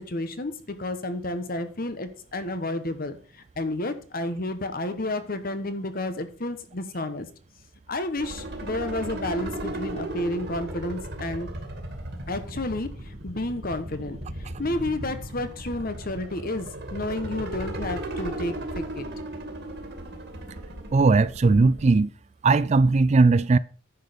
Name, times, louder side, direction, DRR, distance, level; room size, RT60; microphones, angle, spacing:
voice 1, 0.0-3.2 3.6-7.3 7.9-11.5 12.3-19.1, left 2 dB, 50° left, 1.2 m, -31 dB
sound 1, 8.2-22.0, right 1 dB, 55° right, 2.2 m, -36 dB
voice 2, 20.9-22.1 22.4-23.6, right 3 dB, 35° right, 0.4 m, -18 dB
10.0 x 6.4 x 5.1 m
head